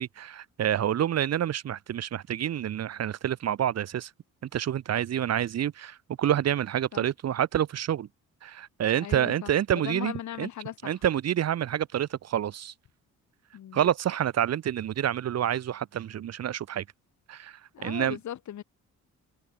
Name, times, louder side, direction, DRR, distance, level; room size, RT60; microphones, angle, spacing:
voice 1, 0.0-4.1 4.5-8.1 8.4-10.1 10.4-10.5 10.8-12.7 13.7-16.8 17.3-18.2, right 10 dB, 55° right, 1.2 m, -28 dB
voice 2, 9.0-11.0 13.5-13.9 17.7-18.6, left 11 dB, 70° left, 7.0 m, -38 dB
cardioid pair, 90°, 30 cm